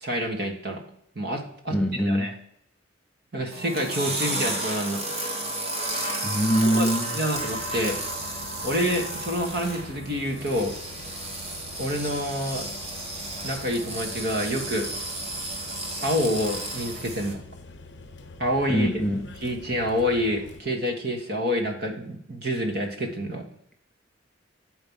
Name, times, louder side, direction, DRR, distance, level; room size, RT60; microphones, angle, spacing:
voice 1, 0.0-0.8 1.1-2.3 3.3-5.0 6.6-8.0 8.6-10.7 11.8-12.7 13.4-14.9 16.0-17.4 18.4-18.9 19.4-23.4, equal, 55° right, 2 dB, 1.3 m, -27 dB
voice 2, 1.7-2.4 6.2-7.1 18.7-19.3, equal, 5° left, 2 dB, 0.6 m, -24 dB
sound 1, 3.5-17.3, right 1 dB, 30° right, 1.2 m, -33 dB
sound 2, 7.3-20.6, left 3 dB, 70° left, 0.8 m, -45 dB
7.7 x 4.6 x 5.4 m, 0.70 s
head